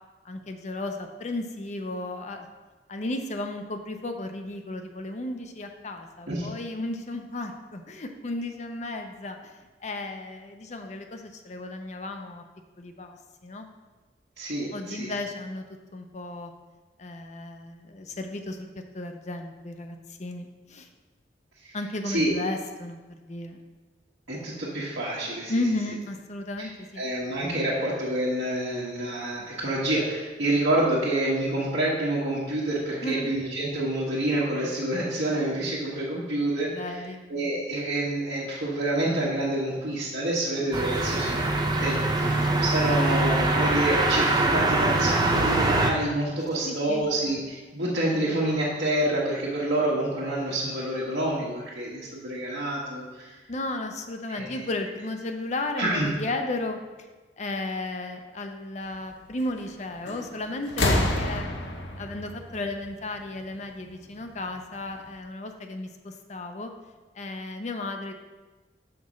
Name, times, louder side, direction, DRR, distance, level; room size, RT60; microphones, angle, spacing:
voice 1, 0.2-2.5 2.9-9.5 9.8-12.4 12.8-13.7 14.7-15.6 15.9-16.5 17.0-18.7 18.9-20.9 21.7-23.6 25.5-27.0 33.0-33.4 36.7-37.3 46.6-47.1 53.5-56.8 57.4-61.5 62.0-66.7 67.2-68.1, left 2 dB, 40° left, 5 dB, 0.6 m, -34 dB
voice 2, 14.4-15.1 21.6-21.8 22.0-22.3 24.3-25.5 26.6-26.7 27.0-36.9 37.3-41.5 41.8-53.3 54.3-54.5 55.8-56.1, right 1 dB, 75° right, -9 dB, 1.4 m, -28 dB
sound 1, 40.7-45.9, right 2 dB, 25° right, 0.7 m, -23 dB
sound 2, 60.1-60.4 60.7-63.4 64.6-64.7, left 1 dB, 80° left, 1.0 m, -28 dB
5.9 x 4.2 x 6.2 m, 1.2 s
head